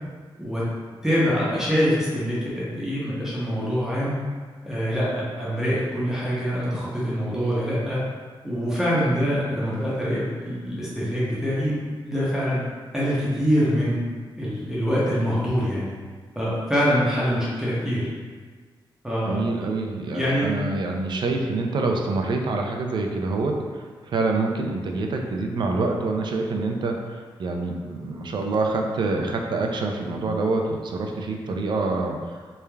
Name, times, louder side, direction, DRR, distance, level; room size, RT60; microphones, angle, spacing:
voice 1, 1.0-4.2 4.6-8.0 8.4-11.7 12.0-12.6 12.9-14.0 14.4-15.9 16.4-18.1 19.0-19.4 20.1-20.5, equal, 5° right, -9 dB, 0.6 m, -24 dB
voice 2, 19.2-32.2, right 3 dB, 60° right, 2 dB, 0.3 m, -26 dB
3.1 x 2.3 x 2.2 m, 1.5 s
wide cardioid pair, 110°, 9 cm